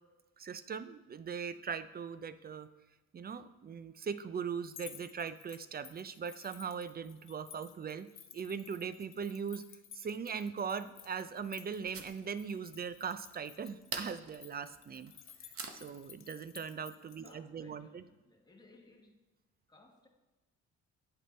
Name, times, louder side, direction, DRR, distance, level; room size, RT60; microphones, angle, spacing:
voice 1, 0.4-2.7 3.1-8.1 8.3-9.6 9.9-15.1 15.7-18.0, right 6 dB, 30° right, 13 dB, 0.4 m, -40 dB
sound 1, 4.6-17.3, left 8 dB, 45° left, 0.7 m, -55 dB
sound 2, 10.6-16.1, right 5 dB, 50° right, 1.0 m, -48 dB
voice 2, 17.2-19.2 19.7-20.1, left 2 dB, 15° left, 0 dB, 1.5 m, -61 dB
8.2 x 6.1 x 4.4 m, 1.1 s
cardioid pair, 90°, 30 cm